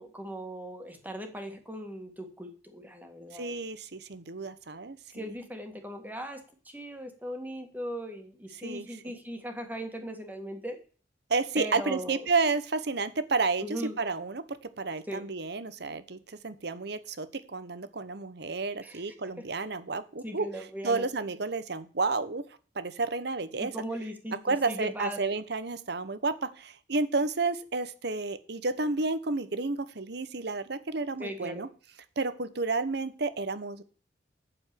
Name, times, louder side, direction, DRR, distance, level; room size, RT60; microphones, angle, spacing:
voice 1, 0.0-3.5 5.1-10.8 11.6-12.3 13.6-14.0 15.1-15.2 18.8-19.0 19.4-19.5 20.2-21.1 23.6-25.3 31.2-31.7, equal, 10° right, 5 dB, 1.9 m, -39 dB
voice 2, 3.3-5.3 8.5-8.9 11.3-14.4 14.8-22.4 22.7-23.7 24.4-31.7 32.2-33.8, right 3 dB, 60° right, 14 dB, 1.0 m, -31 dB
8.7 x 7.1 x 6.9 m, 0.39 s
head